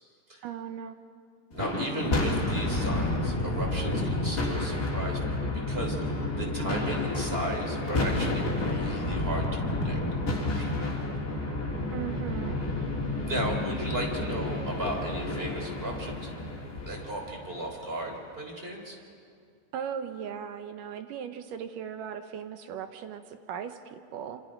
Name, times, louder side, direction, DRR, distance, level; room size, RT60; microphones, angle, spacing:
voice 1, 0.4-1.0 11.9-12.6 19.7-24.4, right 8 dB, 75° right, 8 dB, 2.3 m, -38 dB
sound 1, 1.5-17.9, left 2 dB, 25° left, 3.4 m, -30 dB
voice 2, 1.5-5.3 5.7-11.0 13.2-16.1 16.9-19.0, right 1 dB, 15° right, 1 dB, 3.1 m, -36 dB
27.0 x 26.5 x 5.1 m, 2.3 s
omnidirectional pair, 4.2 m